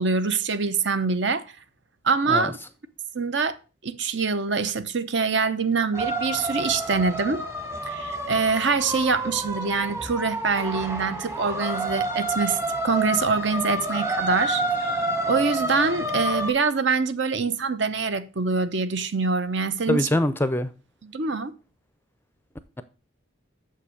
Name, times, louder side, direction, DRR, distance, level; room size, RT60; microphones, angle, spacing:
voice 1, 0.0-1.4 2.0-2.6 3.1-3.6 3.8-7.4 7.9-12.6 12.8-20.1 21.0-21.5, right 4 dB, 60° right, 0.8 m, -25 dB
sound 1, 5.9-16.5, right 1 dB, 15° right, 1.2 m, -29 dB
voice 2, 19.9-20.7, left 1 dB, 10° left, 0.5 m, -23 dB
7.1 x 5.7 x 6.4 m
head